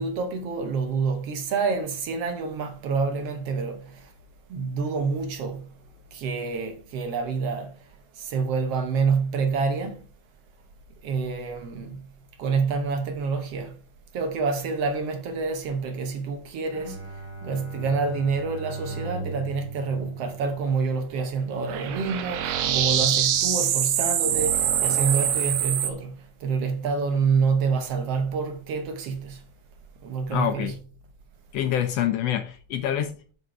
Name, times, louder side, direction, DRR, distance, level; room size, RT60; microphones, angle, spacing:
voice 1, 0.0-4.1 4.5-5.7 6.1-7.7 8.2-10.0 11.0-12.0 12.4-13.7 14.1-17.0 17.4-29.4 30.0-30.7, right 5 dB, 65° right, 1.8 m, -27 dB
Bowed string instrument, 16.7-21.1, right 3 dB, 20° right, 0.8 m, -38 dB
sound 1, 21.6-25.9, right 10 dB, 85° right, 2.4 m, -24 dB
voice 2, 30.3-30.8 31.5-33.3, left 10 dB, 75° left, 1.6 m, -26 dB
6.7 x 6.4 x 4.6 m
omnidirectional pair, 3.3 m